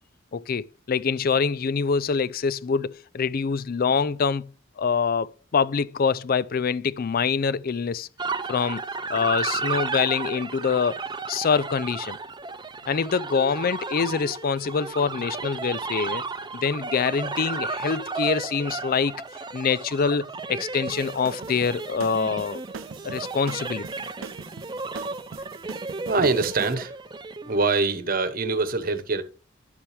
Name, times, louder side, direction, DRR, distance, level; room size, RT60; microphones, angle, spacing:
voice 1, 0.3-4.5 4.8-8.1 8.5-8.8 9.1-11.0 11.3-12.2 12.9-16.2 16.5-19.1 19.5-22.6 23.0-23.8, left 5 dB, 45° left, 0.4 m, -25 dB
sound 1, 8.2-27.6, right 4 dB, 20° right, 0.6 m, -33 dB
sound 2, 20.8-26.7, right 5 dB, 70° right, 0.6 m, -41 dB
voice 2, 26.1-26.9 27.4-29.2, right 3 dB, 45° right, 1.1 m, -24 dB
11.0 x 7.3 x 3.4 m
head